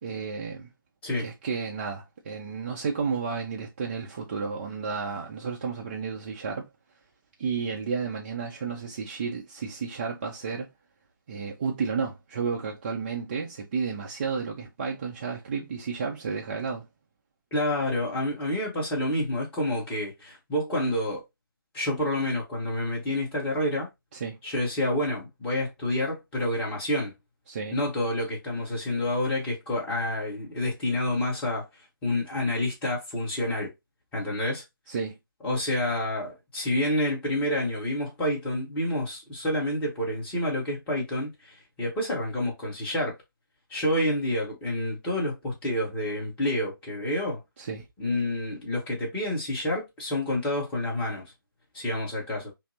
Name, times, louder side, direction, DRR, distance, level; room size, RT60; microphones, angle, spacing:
voice 1, 0.0-0.7 1.2-6.7 7.4-10.7 11.3-16.9 24.1-24.4 27.5-27.8 34.9-35.2 47.6-47.8, right 5 dB, 25° right, 0.5 m, -32 dB
voice 2, 17.5-21.2 21.7-23.9 24.4-27.1 27.7-31.7 32.0-33.7 34.1-34.6 35.4-43.2 43.7-47.4 48.0-51.2 51.7-52.5, left 1 dB, 10° left, 1.1 m, -28 dB
5.6 x 2.0 x 2.7 m
figure-of-eight pair, 150°, 12 cm